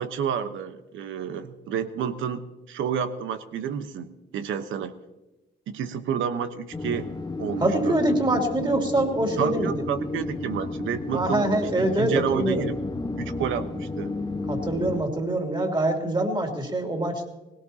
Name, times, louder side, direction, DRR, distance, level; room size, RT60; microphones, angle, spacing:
voice 1, 0.0-2.4 2.7-4.9 5.7-7.1 7.4-8.0 9.4-12.8 13.2-14.1, right 8 dB, 80° right, 10 dB, 1.1 m, -30 dB
sound 1, 6.7-15.0, left 2 dB, 20° left, 1.2 m, -32 dB
voice 2, 7.6-9.7 11.1-12.7 14.5-17.3, right 1 dB, 25° right, 2 dB, 2.9 m, -24 dB
20.0 x 17.5 x 2.8 m, 1.1 s
cardioid pair, 90°, 20 cm